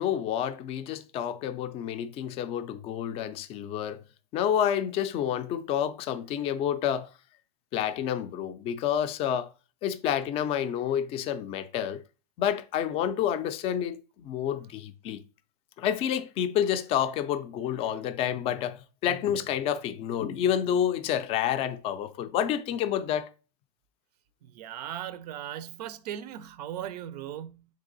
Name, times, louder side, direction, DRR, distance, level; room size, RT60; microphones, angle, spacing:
voice 1, 0.0-4.0 4.3-7.1 7.7-9.5 9.8-12.0 12.4-15.2 15.8-23.3, left 9 dB, 30° left, 0.4 m, -29 dB
voice 2, 24.4-27.7, right 11 dB, 85° right, 0.5 m, -38 dB
3.6 x 3.3 x 3.9 m
supercardioid pair, 145°, 20 cm